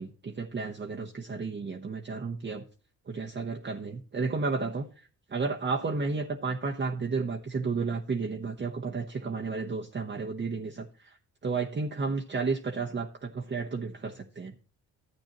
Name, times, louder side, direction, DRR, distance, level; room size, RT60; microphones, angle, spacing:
voice 1, 0.0-2.6 3.1-4.9 5.3-11.1 11.4-14.5, right 4 dB, 30° right, 0 dB, 1.1 m, -32 dB
12.0 x 8.7 x 3.0 m, 0.42 s
supercardioid pair, 65°, 36 cm